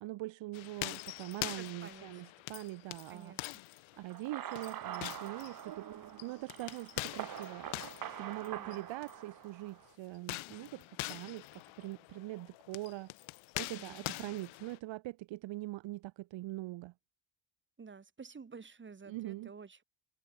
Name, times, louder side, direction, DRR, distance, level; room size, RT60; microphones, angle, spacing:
voice 1, 0.0-3.3 4.0-5.9 6.2-7.7 8.1-13.1 13.6-16.9 19.1-19.5, right 18 dB, 70° right, 1.3 m, -43 dB
sound 1, 0.5-9.2 10.2-14.8, left 21 dB, 90° left, 1.0 m, -44 dB
voice 2, 1.6-2.2 3.1-3.5 8.6-8.9 13.7-14.1 17.8-19.8, right 5 dB, 25° right, 7.0 m, -51 dB
sound 2, 4.1-9.9, right 11 dB, 45° right, 2.1 m, -45 dB
cardioid pair, 140°, 46 cm